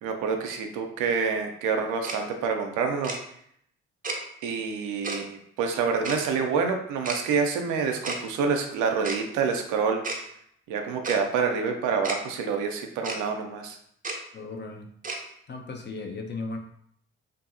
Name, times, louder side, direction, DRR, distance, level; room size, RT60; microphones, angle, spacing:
voice 1, 0.0-3.1 4.4-10.0 10.7-13.8, right 5 dB, 70° right, 4 dB, 0.5 m, -27 dB
Tick-tock, 2.0-2.2 3.0-3.2 4.0-4.2 5.0-5.2 6.0-6.2 7.0-7.2 8.0-8.2 9.0-9.2 10.0-10.2 11.0-11.2 12.0-12.2 13.0-13.2 14.0-14.2 15.0-15.2, right 3 dB, 25° right, 0.6 m, -31 dB
voice 2, 14.3-14.9 15.5-16.6, left 3 dB, 35° left, 3 dB, 0.6 m, -36 dB
2.6 x 2.5 x 2.5 m, 0.69 s
hypercardioid pair, 40°, 32 cm